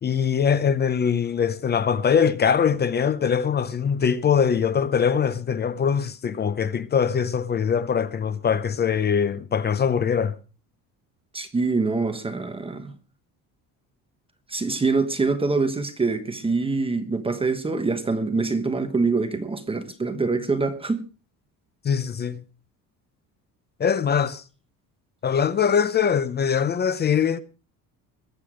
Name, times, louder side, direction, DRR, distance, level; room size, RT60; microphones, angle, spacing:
voice 1, 0.0-10.3 21.8-22.4 23.8-24.4 25.2-27.4, left 7 dB, 30° left, 0.7 m, -22 dB
voice 2, 11.3-12.9 14.5-21.0, right 3 dB, 15° right, 1.2 m, -25 dB
21.5 x 8.3 x 5.0 m
cardioid pair, 150°, 35 cm